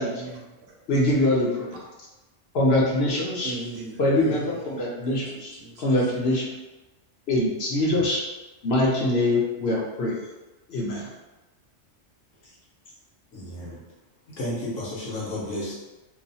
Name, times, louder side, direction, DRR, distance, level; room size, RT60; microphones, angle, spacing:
voice 1, 0.0-0.8 3.4-4.5 5.0-5.8, right 3 dB, 80° right, 0 dB, 1.0 m, -39 dB
voice 2, 0.9-1.7 2.5-3.6 4.0-5.5 5.8-6.5 7.3-8.2 8.6-10.2 10.7-11.1, left 1 dB, 60° left, -4 dB, 0.8 m, -23 dB
voice 3, 13.3-13.8 14.4-15.7, left 1 dB, 80° left, -6 dB, 1.3 m, -32 dB
2.9 x 2.0 x 2.6 m, 1.1 s
omnidirectional pair, 1.3 m